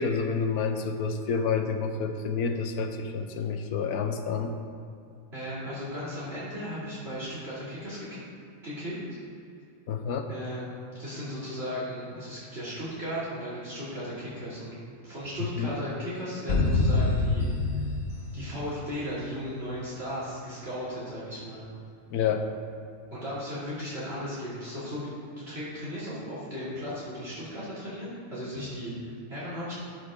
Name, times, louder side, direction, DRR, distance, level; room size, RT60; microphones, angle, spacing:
voice 1, 0.0-4.6 9.9-10.2 15.6-15.8 22.1-22.5, left 5 dB, 90° left, 6 dB, 1.3 m, -29 dB
voice 2, 5.3-8.2 8.6-9.0 10.3-10.6 11.0-14.7 15.0-17.8 18.3-21.6 23.1-25.1 25.5-29.7, equal, 45° right, -10 dB, 3.0 m, -36 dB
sound 1, 16.5-19.2, left 2 dB, 70° left, 1.5 m, -26 dB
12.5 x 8.3 x 3.7 m, 2.5 s
omnidirectional pair, 1.5 m